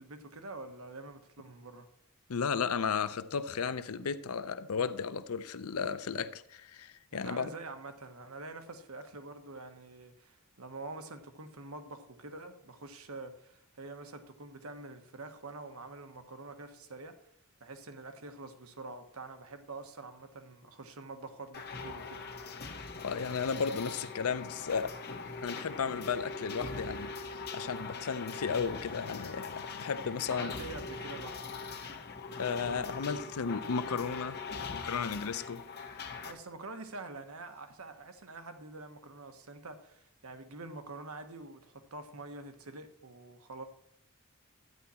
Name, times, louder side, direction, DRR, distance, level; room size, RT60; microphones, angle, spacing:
voice 1, 0.0-1.9 7.1-17.2 17.6-22.3 30.3-31.4 36.2-43.6, right 3 dB, 75° right, 1.2 m, -46 dB
voice 2, 2.3-7.5 23.0-24.9 25.4-30.5 32.4-34.4 34.7-35.6, left 6 dB, 85° left, 0.6 m, -34 dB
sound 1, 21.5-36.3, left 4 dB, 50° left, 1.5 m, -41 dB
12.5 x 9.4 x 4.3 m
head